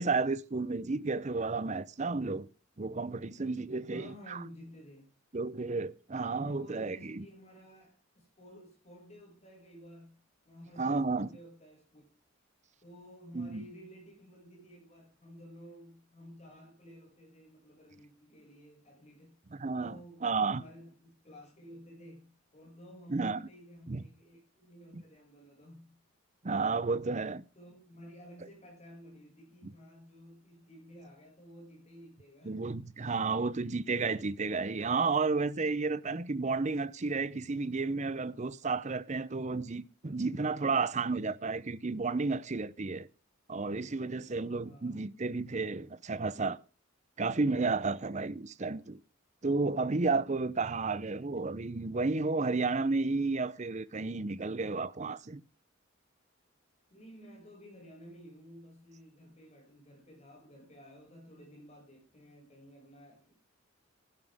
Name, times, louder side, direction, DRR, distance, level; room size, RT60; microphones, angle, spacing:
voice 1, 0.0-2.5 2.8-4.4 5.3-7.3 10.8-11.3 13.3-13.7 19.5-20.6 23.1-23.4 23.9-24.0 24.9-25.0 26.4-27.4 29.6-29.7 32.4-43.1 43.5-46.6 47.2-49.0 49.4-55.4, right 3 dB, 35° right, 0.6 m, -32 dB
voice 2, 3.9-5.1 6.4-12.0 12.8-19.4 19.7-26.0 27.5-32.7 44.6-45.1 56.9-63.3, equal, 35° left, 6.2 m, -53 dB
15.0 x 11.5 x 3.5 m
head